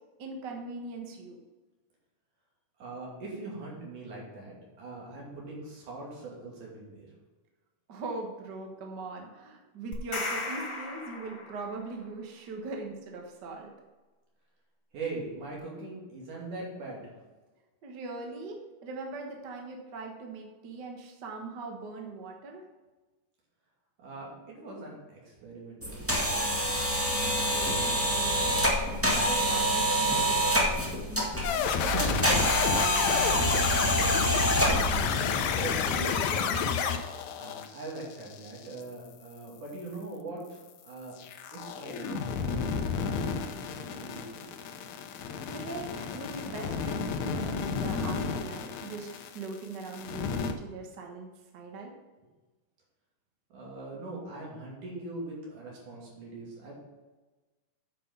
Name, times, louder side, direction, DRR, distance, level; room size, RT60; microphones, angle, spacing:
voice 1, 0.2-1.4 7.9-13.7 17.8-22.6 27.1-30.8 31.5-33.4 45.2-51.9, right 3 dB, 50° right, 1 dB, 1.3 m, -41 dB
voice 2, 2.8-7.1 14.9-17.1 24.0-26.2 34.2-34.9 35.1-36.7 37.4-41.2 41.5-44.4 53.5-56.7, right 2 dB, 75° right, -4 dB, 4.1 m, -41 dB
sound 1, 9.9-11.9, left 3 dB, 45° left, 2.0 m, -36 dB
sound 2, 25.8-35.0, equal, 10° right, 0.8 m, -27 dB
sound 3, 31.4-38.8 41.2-49.6 49.8-50.5, left 6 dB, 75° left, 1.9 m, -31 dB
9.2 x 5.7 x 5.4 m, 1.2 s
omnidirectional pair, 3.7 m